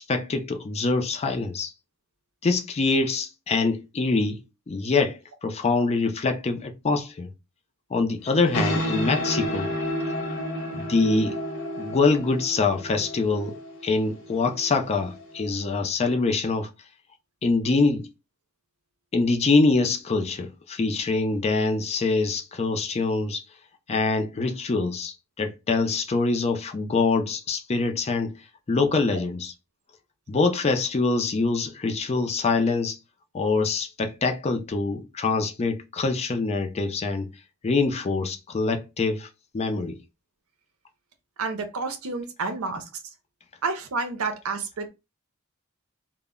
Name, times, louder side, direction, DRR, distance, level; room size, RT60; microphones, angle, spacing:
voice 1, 0.0-1.7 2.4-7.3 7.9-9.7 10.7-11.4 11.8-16.7 17.4-18.1 19.1-23.4 23.9-29.5 30.3-33.0 33.3-37.3 37.6-39.3 39.5-40.0, left 3 dB, 30° left, 0.4 m, -24 dB
sound 1, 8.3-15.4, equal, 60° left, 0.9 m, -31 dB
voice 2, 41.4-42.8 43.6-44.9, right 4 dB, 90° right, 0.6 m, -29 dB
2.1 x 2.0 x 3.5 m
head